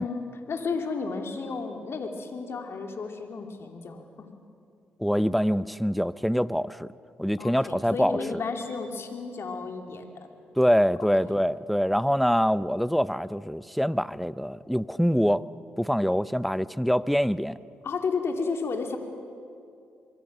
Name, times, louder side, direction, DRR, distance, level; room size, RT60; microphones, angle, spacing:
voice 1, 0.0-4.3 7.4-10.1 11.0-11.1 17.8-19.0, left 4 dB, 55° left, 4 dB, 2.6 m, -32 dB
voice 2, 5.0-6.9 7.2-8.2 10.6-15.5 15.8-17.6, equal, ahead, 18 dB, 0.6 m, -24 dB
24.0 x 23.0 x 6.1 m, 2.5 s
hypercardioid pair, 45°, 5 cm